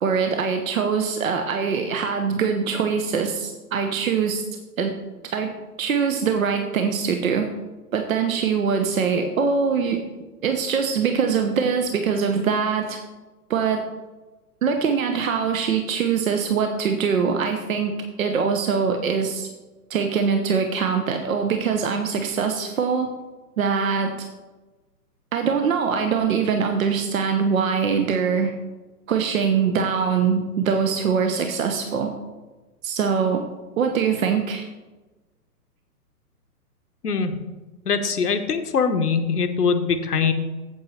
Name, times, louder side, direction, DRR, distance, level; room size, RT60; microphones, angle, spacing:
voice 1, 0.0-4.4 4.8-4.9 5.3-7.5 7.9-10.0 10.4-13.0 13.5-13.9 14.6-17.9 18.2-19.5 19.9-23.1 23.6-24.1 25.3-28.5 29.1-32.1 32.8-33.4 33.8-34.6, right 6 dB, 60° right, 5 dB, 1.0 m, -23 dB
voice 2, 37.9-40.3, left 5 dB, 75° left, 7 dB, 1.1 m, -22 dB
8.4 x 7.9 x 4.3 m, 1.2 s
figure-of-eight pair, 120°, 47 cm